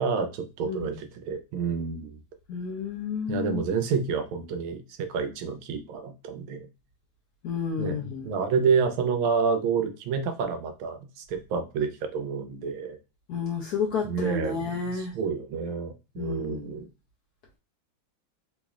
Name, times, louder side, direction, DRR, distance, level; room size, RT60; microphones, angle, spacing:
voice 1, 0.0-2.2 3.3-6.7 7.8-13.0 14.0-16.9, right 5 dB, 80° right, 7 dB, 1.5 m, -29 dB
voice 2, 0.6-1.0 2.5-3.6 7.4-8.3 13.3-15.1 16.2-16.7, left 6 dB, 70° left, 0 dB, 0.9 m, -31 dB
3.5 x 3.1 x 2.3 m, 0.29 s
omnidirectional pair, 2.2 m